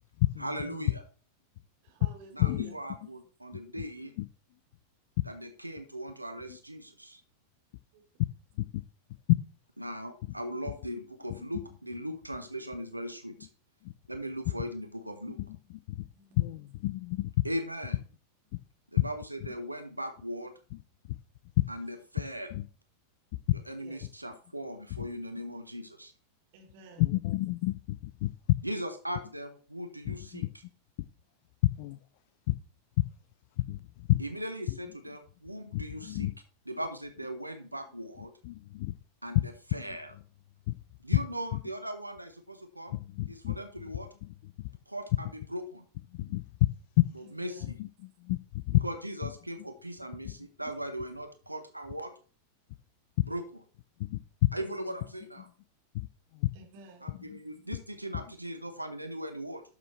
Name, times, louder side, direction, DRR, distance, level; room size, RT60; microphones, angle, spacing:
voice 1, 0.4-1.0 2.3-4.1 5.2-7.2 9.8-13.5 14.1-15.4 17.4-18.0 18.9-20.5 21.7-22.5 23.5-26.1 28.6-30.4 34.2-36.3 36.7-38.3 39.2-40.1 41.0-43.0 43.3-44.1 44.9-45.8 47.4-47.8 48.8-52.1 53.3-53.4 54.5-55.5 57.0-59.6, equal, 85° right, 0.9 m, -39 dB
voice 2, 1.8-2.7 7.9-8.0 16.1-16.7 23.8-24.1 26.5-27.1 47.2-47.7 54.6-55.1 56.5-57.1, right 4 dB, 50° right, 2.7 m, -52 dB
voice 3, 2.4-2.7 4.2-4.3 8.7-8.8 13.8-13.9 15.5-15.6 15.9-16.0 16.4-17.3 22.5-22.6 25.0-25.1 27.0-28.3 30.1-30.5 31.8-32.0 32.5-32.6 33.6-34.2 35.7-36.3 38.4-39.0 40.7-40.8 41.5-41.6 42.9-43.6 44.6-44.7 46.1-46.5 47.8-48.4 48.7-48.8 54.0-54.2 55.9-56.1 56.3-56.5, left 18 dB, 50° left, 0.4 m, -31 dB
12.0 x 6.4 x 3.1 m
figure-of-eight pair, 90°, 0 cm